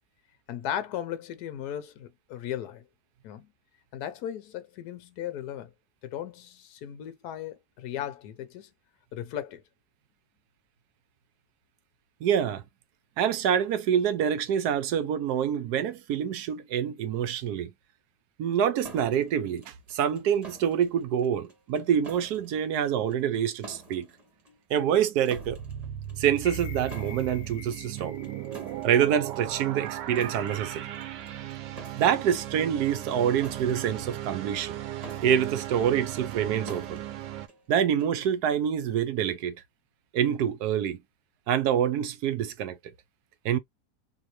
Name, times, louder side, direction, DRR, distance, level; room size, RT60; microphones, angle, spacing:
voice 1, 0.5-2.8 3.2-3.5 3.9-5.7 6.0-8.7 9.1-9.6, left 10 dB, 70° left, 1.2 m, -36 dB
voice 2, 12.2-12.6 13.2-17.7 18.4-24.1 24.7-25.6 26.2-28.2 28.8-30.9 32.0-34.8 35.2-37.0 37.7-39.6 40.1-41.0 41.5-42.8 43.4-43.6, right 9 dB, 70° right, 1.1 m, -26 dB
sound 1, 18.8-38.2, right 2 dB, 25° right, 1.2 m, -50 dB
sound 2, 25.4-37.5, right 11 dB, 90° right, 1.3 m, -37 dB
sound 3, 26.4-30.5 30.9-31.0, left 8 dB, 45° left, 1.0 m, -50 dB
3.7 x 2.9 x 3.0 m
omnidirectional pair, 1.8 m